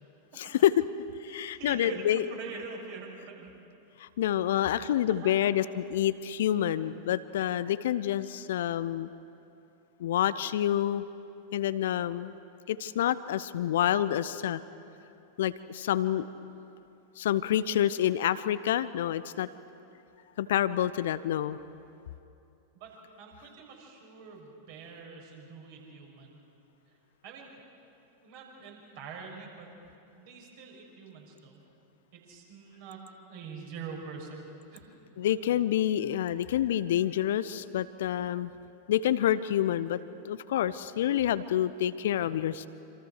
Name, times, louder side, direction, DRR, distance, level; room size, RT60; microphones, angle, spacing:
voice 1, 0.4-0.8 1.2-2.3 4.0-9.1 10.0-11.0 11.5-12.3 12.7-14.6 15.4-16.3 17.2-19.5 20.4-21.6 35.2-38.5 38.9-40.0 40.2-42.7, left 11 dB, 60° left, 16 dB, 0.6 m, -28 dB
voice 2, 1.3-3.5 4.5-5.5 22.7-22.9 23.2-26.4 27.2-27.5 28.2-29.7 30.2-31.6 32.1-33.0 33.3-34.4 34.7-34.8 35.1-35.6 35.9-36.0, right 5 dB, 50° right, 0 dB, 6.2 m, -45 dB
27.0 x 26.5 x 6.6 m, 2.7 s
figure-of-eight pair, 90°, 0 cm